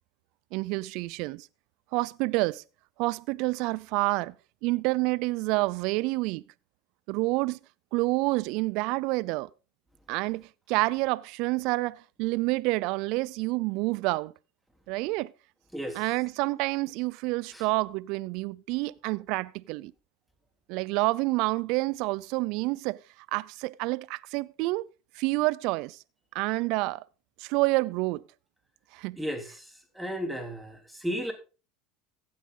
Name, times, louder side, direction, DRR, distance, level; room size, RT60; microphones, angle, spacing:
voice 1, 0.5-1.5 1.9-2.6 3.0-4.3 4.6-6.4 7.1-7.6 7.9-9.5 10.1-14.3 14.9-15.3 15.9-19.9 20.7-23.0 23.3-24.9 25.1-26.0 26.3-27.0 27.4-28.2 28.9-29.2, right 22 dB, 65° right, 0.5 m, -28 dB
voice 2, 15.7-16.0 17.5-17.6 29.2-31.3, equal, 5° right, 3.4 m, -34 dB
15.5 x 8.7 x 3.8 m
hypercardioid pair, 90°, 0 cm